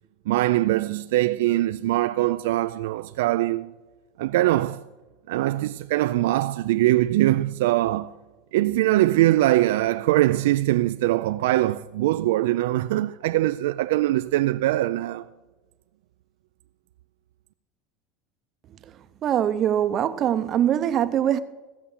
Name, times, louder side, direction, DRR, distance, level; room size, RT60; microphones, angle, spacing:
voice 1, 0.3-3.7 4.2-4.8 5.3-8.1 8.5-15.3, right 16 dB, 85° right, 0.3 m, -22 dB
voice 2, 19.2-21.4, right 10 dB, 30° right, 0.6 m, -22 dB
15.5 x 7.1 x 7.2 m
supercardioid pair, 165°, 0 cm